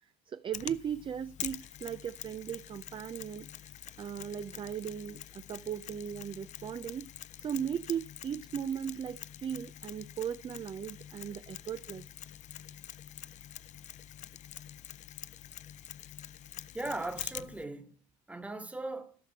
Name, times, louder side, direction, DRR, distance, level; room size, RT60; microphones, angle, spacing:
voice 1, 0.3-3.7 4.0-7.1 7.4-12.1, right 8 dB, 30° right, 0.4 m, -37 dB
Mechanisms, 0.5-17.6, left 11 dB, 45° left, 0.4 m, -46 dB
voice 2, 16.7-18.0 18.3-19.2, right 2 dB, 10° right, 1.4 m, -38 dB
14.5 x 5.8 x 4.5 m
supercardioid pair, 95°, 17 cm